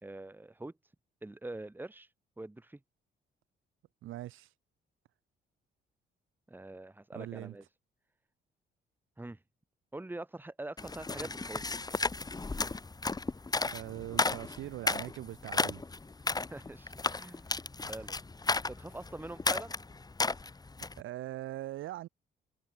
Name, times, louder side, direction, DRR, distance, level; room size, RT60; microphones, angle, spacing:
voice 1, 0.0-0.7 1.2-2.1 2.4-2.8 6.5-7.6 9.2-9.4 9.9-12.0 16.5-17.5 17.9-18.2 18.7-19.8, right 2 dB, 10° right, 1.6 m, -44 dB
voice 2, 4.0-4.5 7.1-7.6 13.7-15.8 21.0-22.1, right 15 dB, 85° right, 1.8 m, -41 dB
sound 1, 10.8-21.0, left 3 dB, 20° left, 1.6 m, -34 dB
cardioid pair, 90°, 20 cm